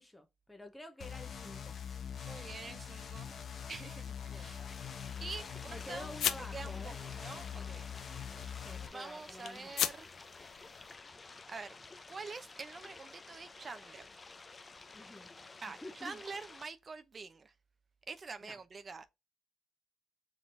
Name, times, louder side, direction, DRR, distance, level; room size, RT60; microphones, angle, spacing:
voice 1, 0.0-1.7 4.3-4.7 5.7-7.0 8.6-9.7 14.9-15.3 15.8-16.2 18.4-18.6, left 1 dB, 10° left, 0.9 m, -49 dB
sound 1, 1.0-8.9, left 8 dB, 55° left, 0.9 m, -44 dB
voice 2, 2.2-3.3 3.7-4.7 5.2-6.1 6.5-7.9 8.9-10.1 11.5-11.8 12.1-14.1 15.6-17.5 18.1-19.0, right 4 dB, 35° right, 0.6 m, -46 dB
sound 2, 3.2-11.0, left 10 dB, 75° left, 0.5 m, -42 dB
sound 3, 4.7-16.7, left 3 dB, 30° left, 0.6 m, -53 dB
5.0 x 3.7 x 2.6 m
cardioid pair, 90°, 0 cm